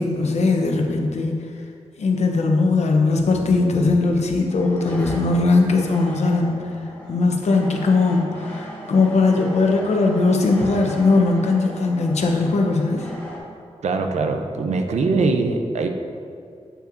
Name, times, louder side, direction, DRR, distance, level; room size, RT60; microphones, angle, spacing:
voice 1, 0.0-1.4 2.0-6.7 7.1-13.1, left 3 dB, 75° left, 2 dB, 0.7 m, -19 dB
sound 1, 4.4-13.4, equal, 10° left, 1.2 m, -38 dB
voice 2, 13.8-15.9, right 3 dB, 80° right, 5 dB, 0.5 m, -22 dB
8.7 x 5.4 x 2.6 m, 2.3 s
wide cardioid pair, 155°, 11 cm